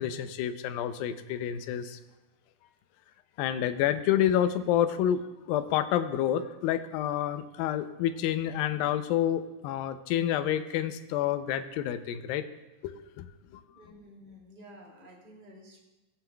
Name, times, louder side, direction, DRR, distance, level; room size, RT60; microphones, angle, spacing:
voice 1, 0.0-2.0 3.4-5.2 5.5-12.5 12.8-13.3, left 10 dB, 80° left, 9 dB, 2.2 m, -28 dB
voice 2, 13.7-15.8, equal, 15° right, -3 dB, 2.0 m, -51 dB
20.0 x 7.6 x 2.3 m, 1.1 s
omnidirectional pair, 4.4 m